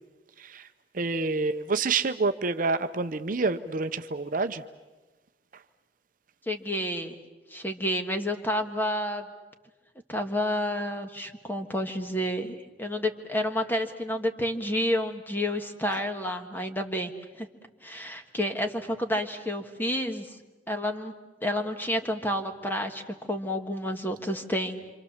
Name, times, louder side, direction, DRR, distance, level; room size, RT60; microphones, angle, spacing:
voice 1, 0.4-0.7 0.9-4.6, right 3 dB, 50° right, 0.7 m, -28 dB
voice 2, 6.5-7.1 7.5-9.3 10.1-17.5 17.8-20.4 20.7-21.1 21.4-24.8, left 1 dB, 10° left, 1.5 m, -30 dB
27.0 x 26.5 x 7.2 m
head